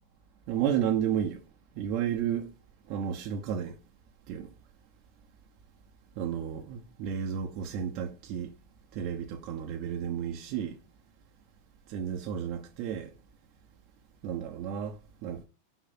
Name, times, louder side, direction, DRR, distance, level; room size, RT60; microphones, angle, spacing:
voice 1, 0.5-1.4 1.8-2.5 2.9-3.8 4.3-4.5 6.2-8.5 8.9-10.8 11.9-13.1 14.2-15.4, right 9 dB, 45° right, 1.0 m, -32 dB
5.8 x 5.3 x 4.1 m
figure-of-eight pair, 90°, 0 cm